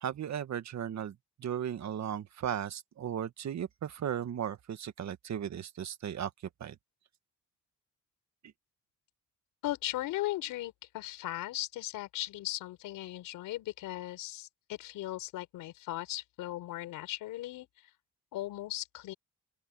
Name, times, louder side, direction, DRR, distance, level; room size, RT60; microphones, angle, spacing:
voice 1, 0.0-6.3 6.6-6.8, right 9 dB, 60° right, 1.6 m, -36 dB
voice 2, 9.6-17.7 18.3-19.1, left 15 dB, 90° left, 4.7 m, -37 dB
open air
cardioid pair, 85°, 32 cm